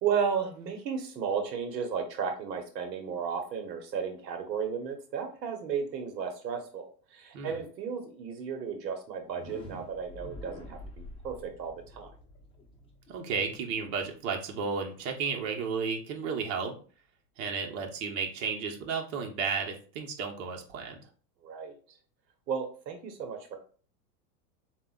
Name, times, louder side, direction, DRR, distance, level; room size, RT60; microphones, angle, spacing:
voice 1, 0.0-12.1 21.4-22.0 22.5-23.6, right 6 dB, 85° right, 6 dB, 1.1 m, -34 dB
titleflight-bubbling-liquid-splatter, 9.2-15.0, left 1 dB, 10° left, 0.8 m, -48 dB
voice 2, 13.1-16.8 17.4-21.0, right 5 dB, 50° right, 2 dB, 1.1 m, -33 dB
7.0 x 2.5 x 2.3 m, 0.40 s
hypercardioid pair, 125°, 49 cm